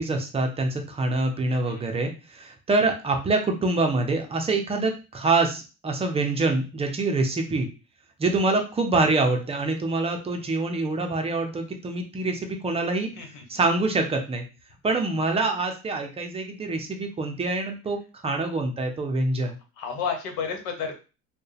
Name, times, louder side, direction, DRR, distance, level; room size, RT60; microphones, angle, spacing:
voice 1, 0.0-7.7 8.2-13.1 13.5-14.4 14.8-18.0 18.2-19.5, right 3 dB, 20° right, 4 dB, 0.5 m, -25 dB
voice 2, 1.4-1.8 13.1-13.4 19.8-20.9, left 6 dB, 85° left, 5 dB, 1.2 m, -31 dB
4.4 x 2.2 x 3.3 m, 0.32 s
cardioid pair, 155°, 33 cm